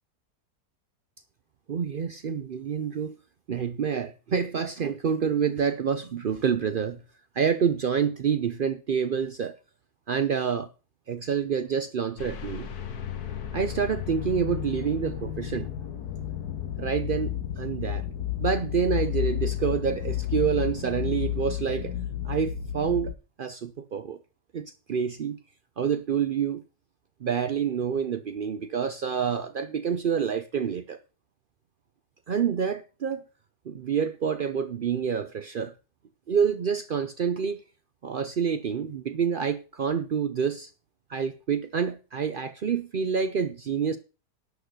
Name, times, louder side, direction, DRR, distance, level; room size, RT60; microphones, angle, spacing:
voice 1, 1.7-3.2 3.5-7.0 7.3-9.6 10.1-10.7 11.1-12.7 13.5-15.7 16.8-18.1 18.4-21.9 22.2-23.1 23.4-24.2 24.5-25.4 25.8-26.6 27.2-31.0 32.3-33.2 33.7-35.7 36.3-37.6 38.0-40.7 41.1-44.0, right 7 dB, 80° right, 0.4 m, -27 dB
sound 1, 12.2-23.1, left 11 dB, 65° left, 1.6 m, -32 dB
11.5 x 6.3 x 6.6 m
omnidirectional pair, 1.8 m